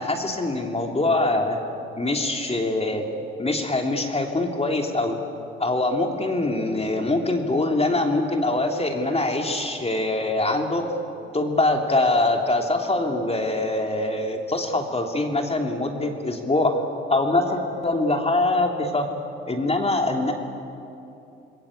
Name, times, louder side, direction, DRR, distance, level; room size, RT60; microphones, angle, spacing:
voice 1, 0.0-1.6 2.0-3.0 3.4-5.2 5.6-10.8 11.3-16.7 17.1-19.1 19.4-20.3, left 2 dB, 20° left, 3 dB, 3.0 m, -23 dB
27.0 x 21.5 x 8.6 m, 2.8 s
figure-of-eight pair, 50°, 31 cm